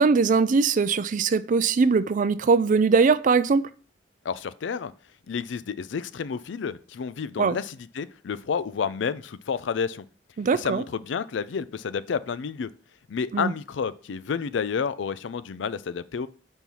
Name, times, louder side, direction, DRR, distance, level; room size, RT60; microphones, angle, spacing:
voice 1, 0.0-3.7 7.4-7.6 10.4-10.8 13.3-13.5, right 4 dB, 45° right, 0.4 m, -21 dB
voice 2, 4.2-4.9 5.3-10.0 10.5-12.7 13.1-16.3, left 6 dB, 75° left, 0.4 m, -30 dB
5.4 x 4.6 x 5.5 m
head